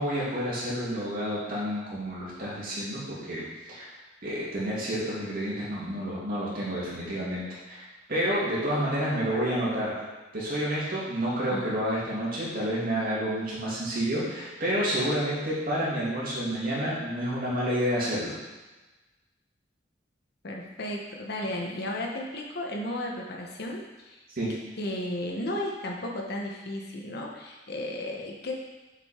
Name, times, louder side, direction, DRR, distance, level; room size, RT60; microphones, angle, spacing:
voice 1, 0.0-3.9 4.2-7.8 8.1-10.0 10.3-18.4 24.4-24.5, equal, 50° right, -7 dB, 2.6 m, -29 dB
voice 2, 20.4-24.2 24.8-28.5, left 1 dB, 60° left, 0 dB, 1.1 m, -34 dB
6.9 x 5.2 x 4.4 m, 1.2 s
head